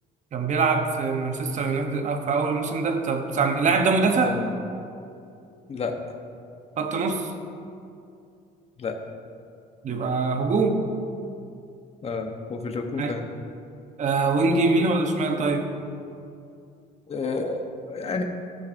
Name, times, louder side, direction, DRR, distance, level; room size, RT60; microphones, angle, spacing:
voice 1, 0.3-4.4 6.8-7.3 9.8-10.8 13.0-13.1 14.0-15.7, right 3 dB, 45° right, 5 dB, 0.9 m, -23 dB
voice 2, 4.2-4.5 5.7-5.9 8.8-9.0 12.0-13.2 17.1-18.2, left 4 dB, 35° left, 4 dB, 1.0 m, -30 dB
15.0 x 6.8 x 2.6 m, 2.5 s
cardioid pair, 110°, 17 cm